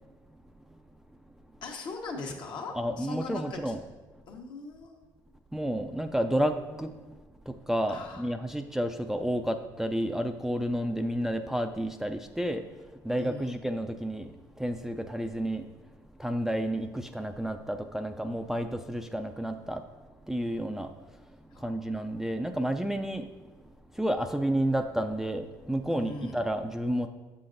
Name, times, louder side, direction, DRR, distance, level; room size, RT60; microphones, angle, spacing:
voice 1, 1.6-3.7 4.3-5.0 7.9-8.3 13.2-13.6 21.5-21.8 25.9-26.4, left 3 dB, 60° left, 1 dB, 1.1 m, -40 dB
voice 2, 2.7-3.8 5.5-6.9 7.5-15.9 16.2-19.8 20.2-20.9 21.3-23.3 23.9-27.1, equal, 5° right, 6 dB, 0.4 m, -31 dB
7.6 x 5.6 x 2.6 m, 1.2 s
supercardioid pair, 70°, 9 cm